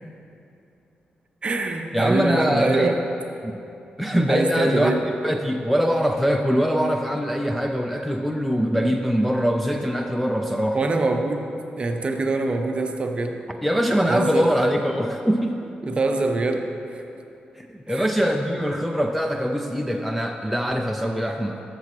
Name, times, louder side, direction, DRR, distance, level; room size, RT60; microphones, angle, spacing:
voice 1, 1.4-3.0 4.3-5.0 10.7-11.5 11.8-13.4 14.1-14.5 15.8-17.0 17.9-18.1, right 3 dB, 35° right, 5 dB, 0.6 m, -24 dB
voice 2, 1.9-3.0 3.4-3.6 4.0-10.8 13.6-15.7 17.6-21.6, equal, ahead, 2 dB, 0.4 m, -23 dB
13.0 x 6.8 x 3.1 m, 2.8 s
wide cardioid pair, 130°, 3 cm